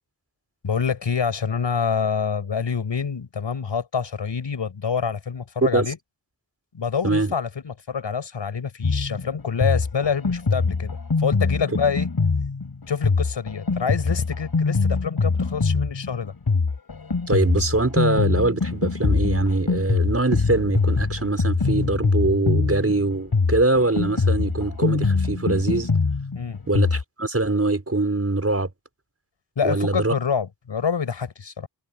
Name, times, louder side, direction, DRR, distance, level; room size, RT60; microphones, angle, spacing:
voice 1, 0.6-6.0 6.7-12.1 12.9-16.3 26.3-26.6 29.6-31.7, left 6 dB, 85° left, 6.6 m, -26 dB
Drum kit, 8.8-27.0, left 4 dB, 60° left, 4.4 m, -23 dB
voice 2, 17.3-25.9 26.7-28.7 29.6-30.2, right 2 dB, 35° right, 5.6 m, -23 dB
cardioid pair, 45°, 43 cm